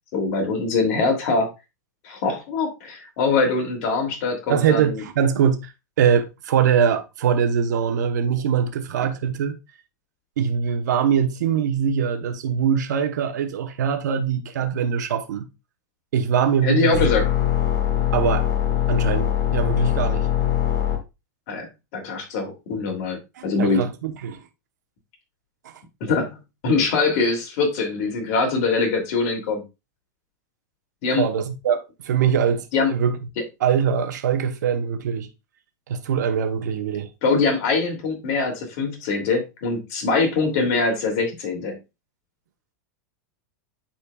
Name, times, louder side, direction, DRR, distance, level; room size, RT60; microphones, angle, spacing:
voice 1, 0.1-1.5 2.0-5.0 16.6-17.3 21.5-23.9 26.0-29.6 31.0-31.3 32.7-32.9 37.2-41.8, left 4 dB, 55° left, 2.7 m, -23 dB
voice 2, 4.5-5.7 6.0-9.6 10.4-15.5 16.1-17.1 18.1-18.5 18.9-20.3 23.4-24.4 31.2-33.2 33.6-35.3 35.9-37.1, right 7 dB, 85° right, 1.1 m, -22 dB
sound 1, 16.9-21.0, left 10 dB, 35° left, 1.7 m, -22 dB
10.0 x 4.3 x 2.3 m
supercardioid pair, 135°, 9 cm